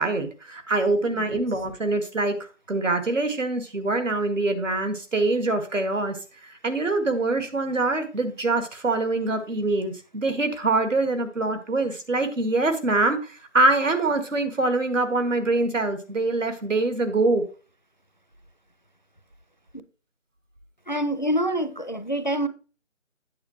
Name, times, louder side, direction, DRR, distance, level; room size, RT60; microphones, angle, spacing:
voice 1, 0.0-2.4 2.7-6.2 6.5-17.4, right 2 dB, 85° right, 1.7 m, -24 dB
voice 2, 20.9-22.5, right 1 dB, 40° left, 0.4 m, -26 dB
8.7 x 7.4 x 2.9 m
figure-of-eight pair, 170°, 37 cm